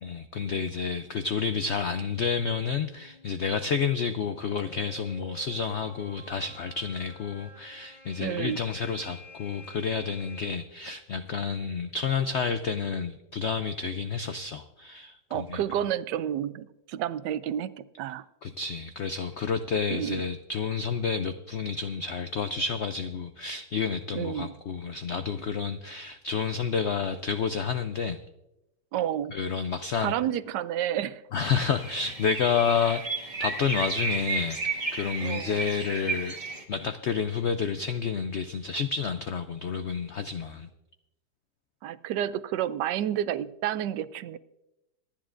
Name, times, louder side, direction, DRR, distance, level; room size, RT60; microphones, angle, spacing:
voice 1, 0.0-15.6 18.4-28.2 29.3-30.1 31.3-33.0 33.4-36.4 36.7-40.7, left 6 dB, 80° left, 10 dB, 0.6 m, -30 dB
sound 1, 0.8-10.5, left 2 dB, 20° left, 5.9 m, -51 dB
voice 2, 8.2-8.6 15.3-18.3 19.9-20.2 24.1-24.5 28.9-29.4 30.0-31.2 35.2-35.6 41.8-44.4, right 11 dB, 85° right, 15 dB, 1.2 m, -30 dB
sound 2, 31.5-36.6, right 4 dB, 25° right, 1.5 m, -33 dB
26.0 x 10.5 x 2.5 m, 0.93 s
omnidirectional pair, 1.8 m